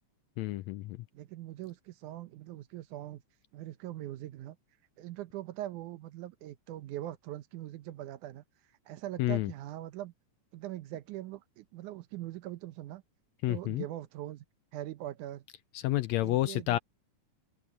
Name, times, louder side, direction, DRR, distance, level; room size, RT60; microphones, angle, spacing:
voice 1, 0.4-1.0 9.2-9.5 13.4-13.8 15.7-16.8, left 16 dB, 80° left, 1.6 m, -30 dB
voice 2, 1.1-3.2 3.5-4.6 5.0-8.4 8.9-10.1 10.5-13.0 13.5-14.4 14.7-15.5 16.2-16.8, right 14 dB, 80° right, 2.3 m, -42 dB
open air
omnidirectional pair, 3.5 m